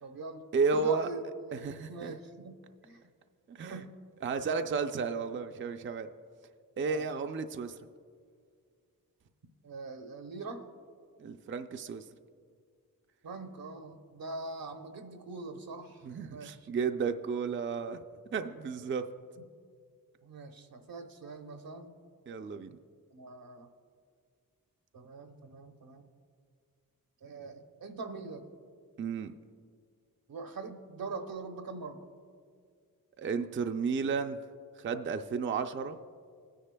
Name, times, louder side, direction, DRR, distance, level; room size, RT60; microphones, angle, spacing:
voice 1, 0.0-0.5 0.7-3.0 3.7-3.9 6.8-7.0 9.6-10.6 13.2-16.7 19.4-19.5 20.2-21.9 23.1-23.7 24.9-26.1 27.2-28.5 30.3-32.1, right 3 dB, 80° right, 5 dB, 1.0 m, -43 dB
voice 2, 0.5-1.1 1.5-2.1 3.5-3.8 4.2-6.1 6.8-7.8 11.2-12.0 16.0-18.0 18.3-19.0 22.3-22.7 29.0-29.3 33.2-34.4 34.8-36.0, right 5 dB, 35° right, 7 dB, 0.4 m, -32 dB
19.5 x 9.9 x 2.2 m, 2.1 s
wide cardioid pair, 100°, 35 cm